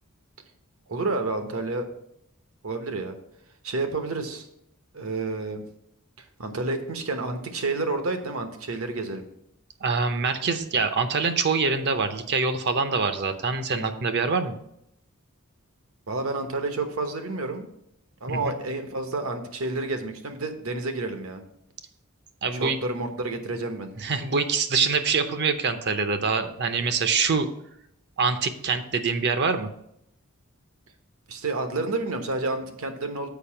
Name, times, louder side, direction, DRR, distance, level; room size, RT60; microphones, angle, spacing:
voice 1, 0.9-1.9 2.6-3.2 3.6-4.4 4.9-5.6 6.2-9.2 16.1-17.7 18.2-21.4 22.5-23.9 31.3-33.3, right 3 dB, 75° right, 7 dB, 1.1 m, -30 dB
voice 2, 9.8-14.5 18.3-18.5 22.4-22.8 24.0-27.5 28.2-29.7, right 4 dB, 55° right, 9 dB, 0.7 m, -25 dB
7.0 x 5.2 x 5.7 m, 0.78 s
head